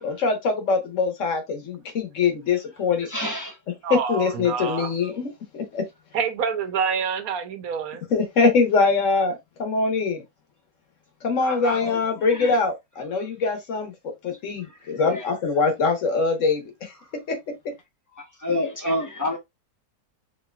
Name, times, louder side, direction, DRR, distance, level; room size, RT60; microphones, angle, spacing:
voice 1, 0.0-3.1 3.9-5.9 8.1-10.2 11.2-13.9 14.2-16.9 17.3-17.4, left 4 dB, 55° left, 1.4 m, -23 dB
voice 2, 3.1-3.6 11.4-12.6 15.0-15.3 18.2-19.4, left 1 dB, 20° left, 0.6 m, -29 dB
voice 3, 3.8-4.9 6.1-8.0, right 6 dB, 75° right, 1.2 m, -27 dB
4.8 x 3.0 x 2.3 m
omnidirectional pair, 1.6 m